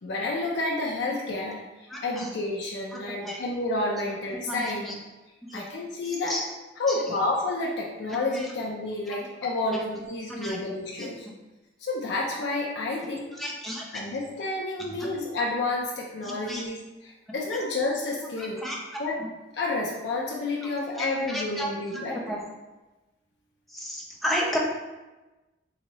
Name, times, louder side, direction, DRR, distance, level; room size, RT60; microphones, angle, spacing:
voice 1, 0.0-4.9 5.5-6.4 6.8-11.3 11.8-13.3 13.9-18.6 19.0-19.2 19.5-22.4, left 2 dB, 65° left, -3 dB, 0.5 m, -30 dB
voice 2, 1.9-2.3 2.9-3.4 4.5-4.9 5.5-5.6 6.3-6.4 6.9-7.0 8.3-8.5 9.7-9.8 10.4-10.6 11.0-11.1 13.3-13.8 16.2-16.7 18.4-19.3 21.0-21.7 22.1-22.5 23.7-24.6, equal, ahead, -3 dB, 0.5 m, -33 dB
4.0 x 2.6 x 3.0 m, 1.1 s
head